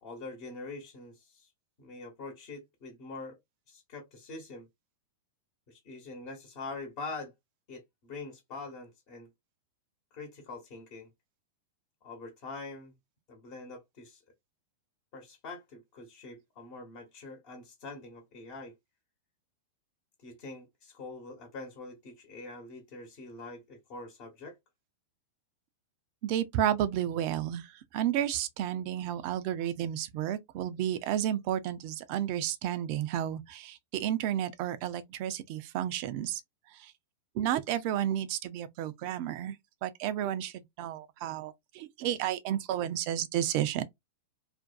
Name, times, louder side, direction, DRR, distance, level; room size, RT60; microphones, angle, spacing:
voice 1, 0.0-1.5 1.8-3.4 3.7-4.7 5.7-7.3 7.7-9.3 10.1-11.1 12.0-13.0 13.3-14.2 15.1-18.7 20.2-24.6, left 3 dB, 50° left, 1.0 m, -44 dB
voice 2, 26.2-27.7 27.9-36.4 36.8-36.9 37.4-39.6 39.8-43.8, right 11 dB, 50° right, 0.4 m, -32 dB
2.5 x 2.2 x 2.4 m
hypercardioid pair, 105°, 0 cm